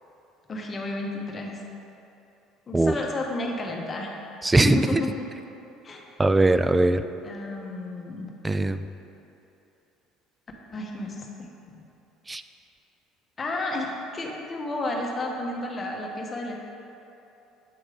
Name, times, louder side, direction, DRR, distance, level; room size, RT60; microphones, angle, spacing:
voice 1, 0.5-1.6 2.7-4.1 4.5-5.2 5.8-6.0 7.2-8.3 10.7-11.8 13.4-16.6, left 2 dB, 35° left, 0 dB, 1.0 m, -32 dB
voice 2, 4.4-5.0 6.2-7.0 8.4-8.8 12.3-12.4, right 2 dB, 15° right, 10 dB, 0.3 m, -20 dB
7.7 x 3.6 x 4.9 m, 2.9 s
supercardioid pair, 80°, 0 cm